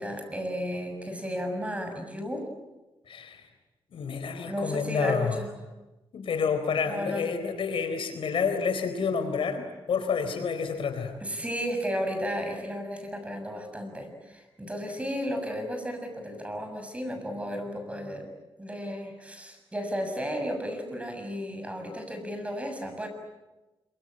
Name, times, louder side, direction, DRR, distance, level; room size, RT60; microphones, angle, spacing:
voice 1, 0.0-2.5 4.4-5.6 6.9-7.3 11.2-18.3 18.6-23.1, equal, 15° right, 5 dB, 7.0 m, -33 dB
voice 2, 3.1-3.4 3.9-5.4 6.1-11.1, left 6 dB, 70° left, 8 dB, 3.9 m, -29 dB
27.0 x 24.5 x 8.9 m, 1.1 s
cardioid pair, 95°, 9 cm